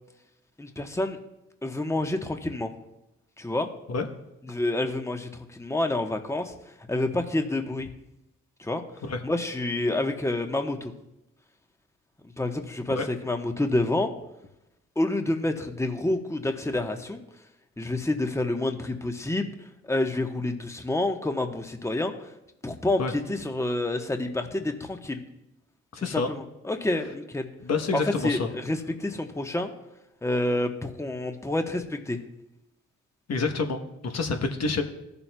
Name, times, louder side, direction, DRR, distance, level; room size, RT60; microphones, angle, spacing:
voice 1, 0.6-1.2 1.6-2.7 3.4-3.7 4.5-6.5 6.9-7.9 8.6-8.8 9.2-10.9 12.4-14.1 15.0-17.2 17.8-19.5 19.8-22.1 22.6-25.2 26.0-27.5 27.9-29.7 30.2-32.2, left 2 dB, 10° left, 5 dB, 1.1 m, -28 dB
voice 2, 25.9-26.3 27.6-28.5 33.3-34.8, left 4 dB, 55° left, 5 dB, 1.1 m, -28 dB
14.5 x 7.0 x 2.3 m, 0.89 s
supercardioid pair, 55°, 31 cm